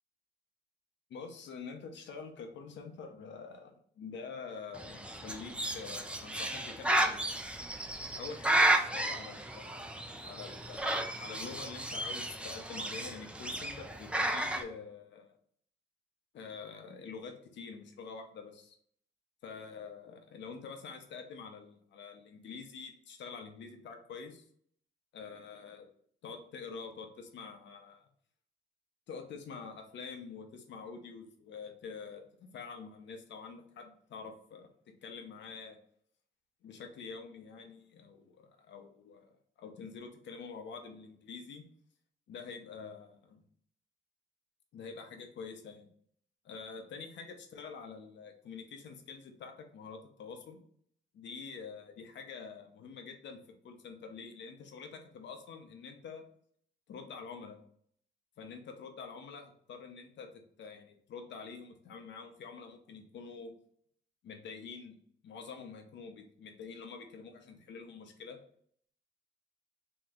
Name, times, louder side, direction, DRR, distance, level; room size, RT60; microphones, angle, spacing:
voice 1, 1.1-7.4 8.1-15.4 16.3-18.7 19.4-24.4 25.1-25.9 26.2-28.1 29.1-34.7 35.0-35.8 36.6-41.7 42.3-43.4 44.7-45.9 46.4-50.6 51.1-56.2 56.9-57.6 58.4-63.5 64.2-64.9 65.2-68.4, left 5 dB, 65° left, 4 dB, 0.8 m, -46 dB
Bird, 4.7-14.6, right 1 dB, 5° right, 0.4 m, -33 dB
3.1 x 3.0 x 3.6 m, 0.63 s
cardioid pair, 90°, 20 cm